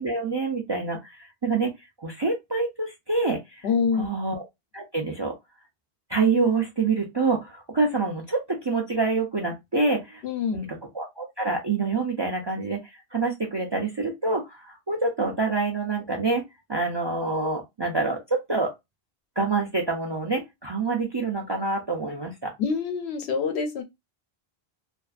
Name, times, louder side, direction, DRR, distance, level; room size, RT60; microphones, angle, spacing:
voice 1, 0.0-1.7 2.0-3.6 4.0-4.4 4.7-5.3 6.1-10.2 10.5-10.7 10.9-12.8 13.1-16.4 16.7-18.7 19.4-22.5, right 3 dB, 40° right, 0.4 m, -26 dB
voice 2, 3.6-4.1 10.2-10.6 22.6-23.8, left 6 dB, 85° left, 0.9 m, -26 dB
2.5 x 2.3 x 2.4 m
omnidirectional pair, 1.1 m